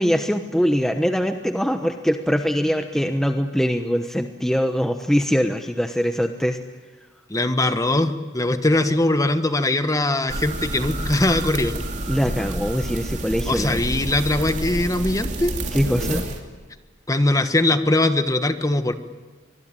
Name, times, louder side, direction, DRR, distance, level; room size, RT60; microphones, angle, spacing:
voice 1, 0.0-6.6 12.1-13.8 15.7-16.2, equal, 5° left, 6 dB, 1.0 m, -22 dB
voice 2, 7.3-11.7 13.5-15.6 17.1-18.9, left 2 dB, 20° left, 9 dB, 1.3 m, -21 dB
sound 1, 10.3-16.4, right 1 dB, 40° right, 3.1 m, -29 dB
24.5 x 21.5 x 9.0 m, 1.3 s
head